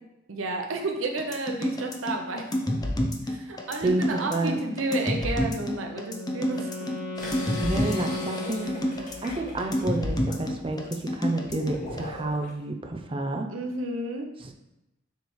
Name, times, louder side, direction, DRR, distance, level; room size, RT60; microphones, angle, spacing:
voice 1, 0.3-2.5 3.3-6.9 13.5-14.3, right 2 dB, 85° right, 3 dB, 0.8 m, -31 dB
sound 1, 1.2-12.0, left 1 dB, 20° left, 0.6 m, -28 dB
voice 2, 3.8-4.6 7.6-13.5 14.4-14.5, right 2 dB, 25° right, 4 dB, 0.6 m, -30 dB
Wind instrument woodwind instrument, 5.6-9.6, left 1 dB, 80° left, 1.7 m, -36 dB
sound 2, 7.2-12.5, left 1 dB, 40° left, 1.4 m, -40 dB
6.7 x 3.3 x 4.7 m, 0.94 s
head